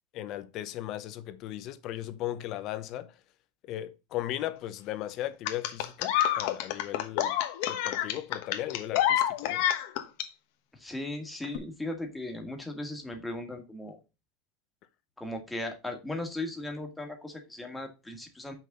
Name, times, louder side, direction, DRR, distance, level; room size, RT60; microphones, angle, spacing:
voice 1, 0.1-3.1 3.6-7.4 7.7-9.6, left 13 dB, 35° left, 0.8 m, -37 dB
sound 1, 5.5-10.3 11.4-11.6, left 11 dB, 55° left, 1.2 m, -28 dB
voice 2, 10.7-14.0 15.2-18.5, left 1 dB, 5° left, 1.6 m, -37 dB
7.4 x 6.0 x 3.8 m
supercardioid pair, 165°, 0 cm